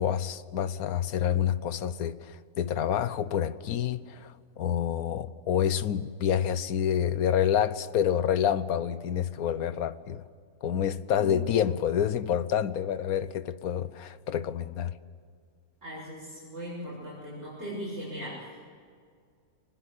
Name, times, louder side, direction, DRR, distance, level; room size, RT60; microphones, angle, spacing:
voice 1, 0.0-10.2 10.6-14.9, left 9 dB, 80° left, 1.3 m, -28 dB
voice 2, 15.8-18.7, equal, 45° right, 6.7 m, -39 dB
24.0 x 20.5 x 8.5 m
omnidirectional pair, 1.5 m